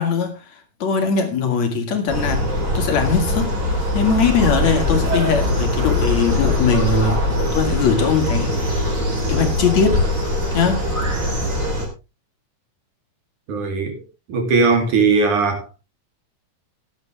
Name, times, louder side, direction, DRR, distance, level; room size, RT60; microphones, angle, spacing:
voice 1, 0.0-2.5 2.7-9.0 9.3-10.1 10.5-10.9, left 5 dB, 65° left, 3.6 m, -21 dB
sound 1, 2.1-11.9, left 1 dB, 25° right, 4.1 m, -21 dB
voice 2, 13.5-14.0 14.3-15.7, right 4 dB, 85° right, 4.5 m, -18 dB
15.5 x 11.0 x 3.5 m
omnidirectional pair, 3.4 m